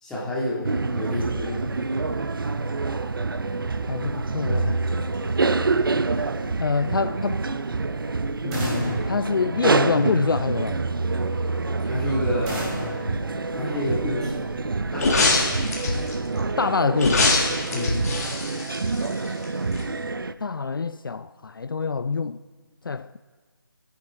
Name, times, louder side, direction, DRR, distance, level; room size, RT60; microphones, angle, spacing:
voice 1, 0.0-1.7 11.8-12.7 13.5-14.5 14.9-15.4 17.7-17.9, left 1 dB, 5° left, 2.3 m, -29 dB
sound 1, 0.6-20.3, right 3 dB, 70° right, 0.6 m, -27 dB
voice 2, 3.9-4.8 6.6-7.4 8.4-10.8 16.6-17.3 20.4-22.4 22.8-23.2, left 5 dB, 65° left, 0.4 m, -26 dB
sound 2, 8.5-10.3 12.5-14.2, right 1 dB, 15° right, 2.8 m, -34 dB
sound 3, 15.0-16.1 17.0-19.4 19.8-19.9, left 3 dB, 45° left, 2.1 m, -23 dB
20.5 x 9.8 x 3.7 m
figure-of-eight pair, 155°, 12 cm